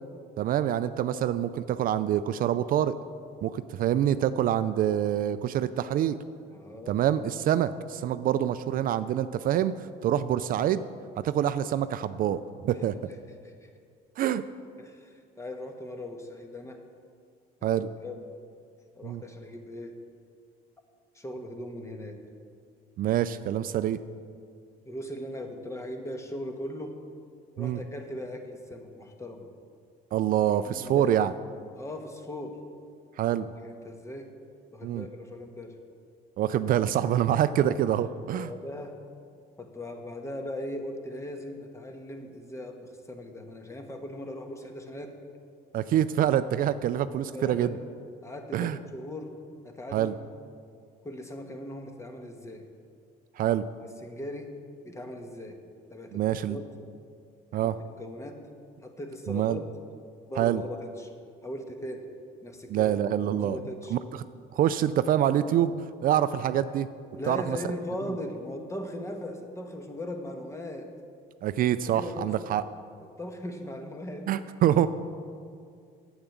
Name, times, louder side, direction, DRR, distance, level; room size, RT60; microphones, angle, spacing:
voice 1, 0.4-2.9 3.4-6.2 6.9-10.8 11.2-13.0 14.2-14.4 17.6-17.9 19.0-19.2 23.0-24.0 27.6-27.8 30.1-31.3 33.2-33.5 34.8-35.1 36.4-38.5 45.7-47.7 48.5-48.8 49.9-50.1 53.4-53.6 56.1-56.6 57.5-57.8 59.3-59.6 60.4-60.6 62.7-63.6 63.9-64.2 64.5-65.7 66.0-66.9 67.3-67.6 71.4-72.6 74.3-74.9, right 11 dB, 55° right, 13 dB, 0.4 m, -26 dB
voice 2, 6.5-7.0 13.4-13.7 14.7-16.8 17.6-18.4 18.9-20.0 21.1-22.2 24.8-27.0 27.5-29.5 30.6-31.1 31.7-32.6 33.6-34.3 34.7-35.8 38.1-39.0 39.6-45.2 47.3-47.8 48.2-49.3 49.6-50.1 51.0-52.7 54.0-54.5 54.8-55.6 55.9-56.2 56.5-56.8 57.5-57.7 58.0-58.5 58.8-59.7 60.3-61.1 61.4-62.1 62.4-63.0 63.3-64.0 67.1-70.9 71.7-72.3 73.2-74.3, left 1 dB, 15° left, 5 dB, 1.3 m, -39 dB
8.7 x 8.1 x 7.3 m, 2.2 s
cardioid pair, 110°, 17 cm